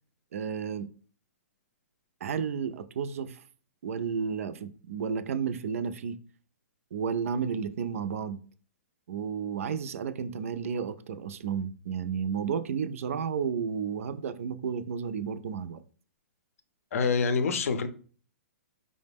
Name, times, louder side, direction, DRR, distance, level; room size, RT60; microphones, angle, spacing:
voice 1, 0.3-0.9 2.2-3.4 3.8-6.2 6.9-8.4 9.1-15.8, right 6 dB, 65° right, 0.3 m, -32 dB
voice 2, 16.9-17.9, left 5 dB, 65° left, 0.5 m, -26 dB
4.9 x 2.1 x 3.4 m
hypercardioid pair, 160°, 8 cm